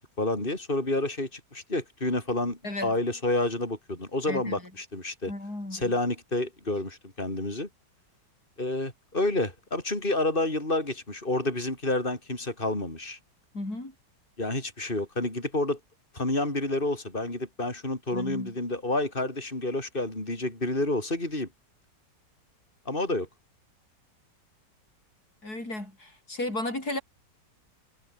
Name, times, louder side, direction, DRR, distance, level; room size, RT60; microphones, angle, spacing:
voice 1, 0.0-5.3 5.7-7.7 8.6-13.2 14.4-15.8 16.1-21.5 22.9-23.3, left 2 dB, 30° left, 6.0 m, -29 dB
voice 2, 2.6-2.9 4.3-4.6 5.3-5.9 13.5-13.9 18.1-18.5 25.4-27.0, left 2 dB, 55° left, 8.6 m, -34 dB
omnidirectional pair, 1.9 m